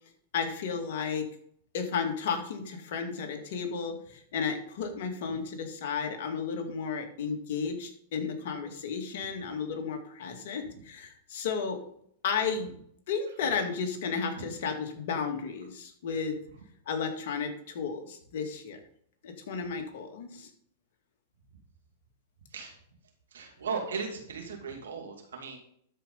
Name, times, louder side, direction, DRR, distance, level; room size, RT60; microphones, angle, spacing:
voice 1, 0.3-1.3 1.7-11.8 12.2-12.7 13.1-16.3 16.9-18.8 19.2-20.5, left 6 dB, 65° left, 4 dB, 2.1 m, -33 dB
voice 2, 23.3-25.6, right 5 dB, 80° right, 3 dB, 2.5 m, -36 dB
12.5 x 5.1 x 5.5 m, 0.66 s
hypercardioid pair, 110°, 0 cm